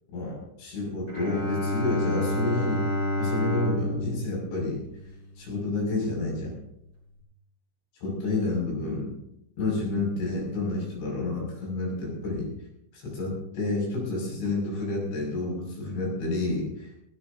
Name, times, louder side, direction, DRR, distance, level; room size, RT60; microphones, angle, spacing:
voice 1, 0.1-2.8 3.2-4.8 5.4-6.6 8.0-9.2 9.6-12.5 12.9-16.9, left 2 dB, 70° left, -2 dB, 8.7 m, -29 dB
Bowed string instrument, 1.1-5.6, left 1 dB, 15° left, 4.6 m, -29 dB
19.5 x 19.0 x 2.8 m, 0.80 s
omnidirectional pair, 5.6 m